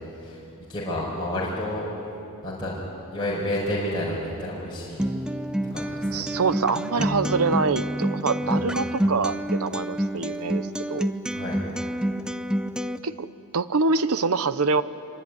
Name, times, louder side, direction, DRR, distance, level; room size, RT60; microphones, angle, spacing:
voice 1, 0.1-0.4 0.7-1.9 2.4-2.8 3.1-5.1 5.7-6.1 7.0-7.3 8.4-8.6 11.3-11.6, left 1 dB, 20° left, -6 dB, 5.2 m, -30 dB
Acoustic guitar, 5.0-13.0, equal, 5° right, 0.7 m, -28 dB
voice 2, 6.1-11.1 13.0-14.8, right 4 dB, 70° right, 13 dB, 0.8 m, -25 dB
25.0 x 24.0 x 9.6 m, 2.8 s
head